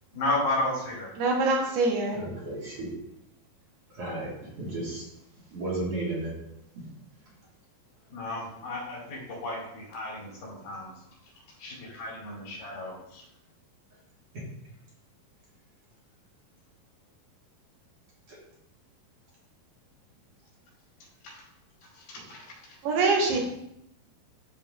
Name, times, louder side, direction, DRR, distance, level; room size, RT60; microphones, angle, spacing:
voice 1, 0.1-1.1 8.1-10.9 11.6-13.2 21.2-21.4 22.0-22.5, left 2 dB, 75° left, -3 dB, 4.1 m, -33 dB
voice 2, 1.2-2.2 22.8-23.4, right 3 dB, 90° right, -1 dB, 3.2 m, -24 dB
voice 3, 2.1-2.9 3.9-5.1 5.5-6.3 6.8-6.9 14.3-14.4 18.3-18.4 22.1-22.2, right 2 dB, 50° right, -6 dB, 2.1 m, -34 dB
13.0 x 4.5 x 2.5 m, 0.81 s
omnidirectional pair, 4.3 m